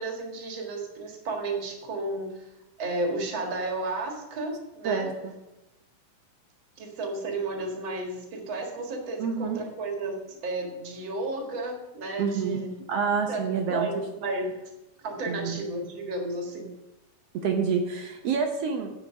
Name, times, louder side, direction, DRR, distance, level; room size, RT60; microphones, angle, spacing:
voice 1, 0.0-2.5 2.8-5.1 6.8-12.7 13.3-14.7 15.0-16.7, right 2 dB, 45° right, 2 dB, 2.2 m, -33 dB
voice 2, 4.8-5.3 9.2-9.6 12.2-12.6 12.9-13.9 15.3-15.6 17.3-18.9, right 5 dB, 65° right, 3 dB, 1.7 m, -28 dB
10.0 x 5.6 x 6.2 m, 0.95 s
omnidirectional pair, 3.6 m